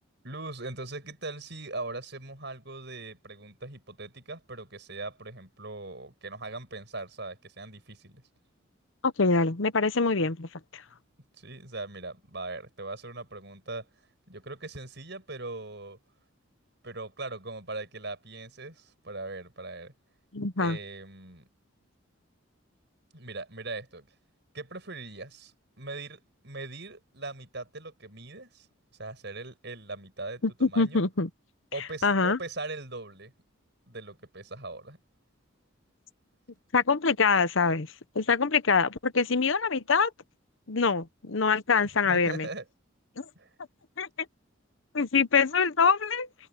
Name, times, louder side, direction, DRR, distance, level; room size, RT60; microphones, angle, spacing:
voice 1, 0.2-8.2 11.4-13.9 14.3-16.0 16.8-19.9 20.6-21.5 23.1-24.1 24.5-28.7 29.0-31.0 31.7-33.3 33.9-35.0 37.7-37.8 42.0-42.6 43.3-43.5, right 2 dB, 55° right, 7.9 m, -40 dB
voice 2, 9.0-10.8 20.3-20.8 30.4-31.3 32.0-32.4 36.7-37.9 38.1-40.1 40.7-42.5 43.2-43.3 44.0-44.1 44.9-46.3, left 4 dB, 70° left, 1.0 m, -24 dB
head